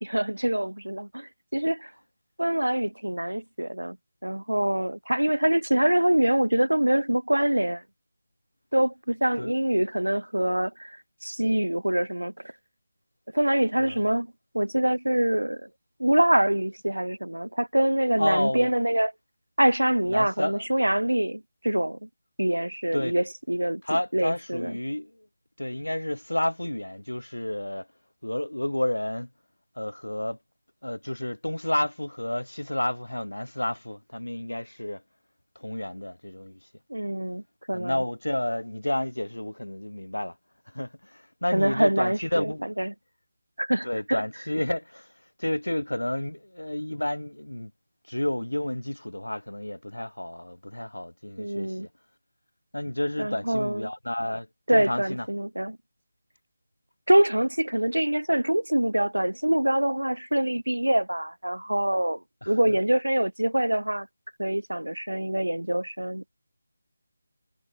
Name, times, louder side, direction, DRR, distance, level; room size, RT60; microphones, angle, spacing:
voice 1, 0.0-1.9 2.4-4.0 4.2-7.8 8.7-12.3 13.3-14.3 14.5-15.7 16.0-19.1 19.6-22.1 22.4-23.8 24.1-24.8 36.9-38.0 41.5-42.5 42.8-42.9 43.6-44.2 51.4-51.9 53.2-53.9 54.7-55.8 57.1-62.2 62.5-64.1 64.4-66.2, right 1 dB, 80° right, 1.0 m, -25 dB
voice 2, 18.2-18.7 20.1-20.6 22.9-23.1 23.8-25.3 25.6-27.9 28.2-29.3 29.8-30.4 30.8-35.0 35.6-36.6 37.7-40.3 40.7-42.7 43.8-45.1 45.4-47.7 48.1-51.9 52.7-55.3 62.4-62.8, left 1 dB, 80° left, 0.7 m, -30 dB
figure-of-eight pair, 160°, 0 cm